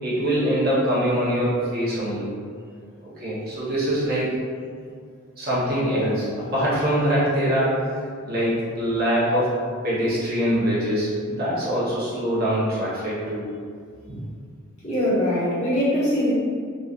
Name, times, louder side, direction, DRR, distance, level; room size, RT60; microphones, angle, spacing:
voice 1, 0.0-2.3 3.0-4.3 5.4-7.9 8.2-9.6 9.8-13.5, equal, 50° right, -9 dB, 1.0 m, -23 dB
voice 2, 14.8-16.3, left 1 dB, 35° left, -13 dB, 1.5 m, -22 dB
3.1 x 2.7 x 2.4 m, 2.1 s
head